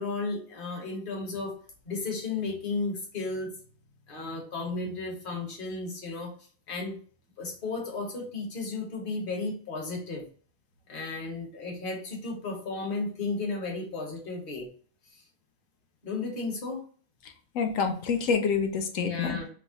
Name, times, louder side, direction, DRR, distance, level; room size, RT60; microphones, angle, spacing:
voice 1, 0.0-1.6 1.9-3.5 4.1-6.3 6.7-7.0 7.4-10.3 10.9-14.7 16.0-16.8 19.0-19.5, left 3 dB, 40° left, 0 dB, 1.1 m, -34 dB
voice 2, 17.2-19.4, left 5 dB, 75° left, 5 dB, 1.0 m, -28 dB
3.5 x 2.0 x 3.5 m, 0.43 s
omnidirectional pair, 1.4 m